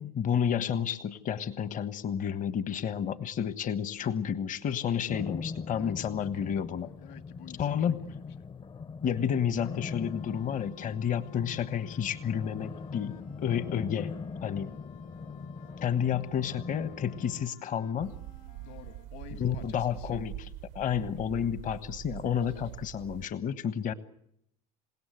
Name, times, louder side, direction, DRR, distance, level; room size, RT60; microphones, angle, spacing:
voice 1, 0.0-6.9 7.6-8.0 9.0-14.1 14.4-14.7 15.8-18.1 19.4-20.5 20.7-23.9, left 8 dB, 45° left, 1.4 m, -31 dB
sound 1, 5.1-17.4, left 4 dB, 30° left, 0.9 m, -41 dB
voice 2, 5.7-6.5 6.8-8.5 18.6-20.3 22.2-22.4, left 9 dB, 65° left, 2.4 m, -51 dB
sound 2, 9.8-19.0, left 4 dB, 80° left, 5.1 m, -57 dB
sound 3, 18.0-23.3, right 15 dB, 70° right, 0.9 m, -44 dB
28.0 x 17.5 x 7.9 m
hypercardioid pair, 75°, 18 cm